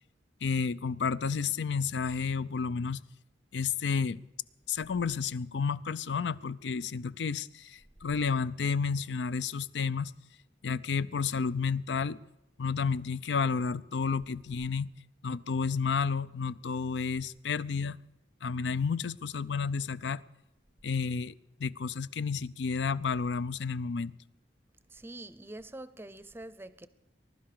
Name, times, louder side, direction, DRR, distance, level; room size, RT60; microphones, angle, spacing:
voice 1, 0.4-3.0 3.5-4.2 4.7-10.1 10.6-12.2 12.6-14.9 15.2-18.0 18.4-20.2 20.8-21.3 21.6-24.1, left 5 dB, 80° left, 0.5 m, -31 dB
voice 2, 24.9-26.9, right 1 dB, 15° right, 0.6 m, -45 dB
21.0 x 11.5 x 5.0 m
head